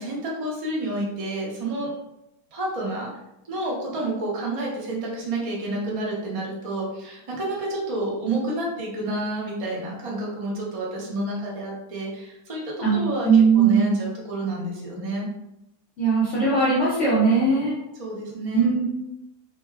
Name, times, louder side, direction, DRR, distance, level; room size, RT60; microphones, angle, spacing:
voice 1, 0.0-1.9 2.5-3.1 3.4-15.3 17.9-18.7, right 2 dB, 50° right, -4 dB, 0.4 m, -29 dB
voice 2, 13.2-13.9 16.0-17.7 18.5-18.8, right 4 dB, 55° left, -7 dB, 1.0 m, -19 dB
2.7 x 2.2 x 3.3 m, 0.89 s
omnidirectional pair, 1.7 m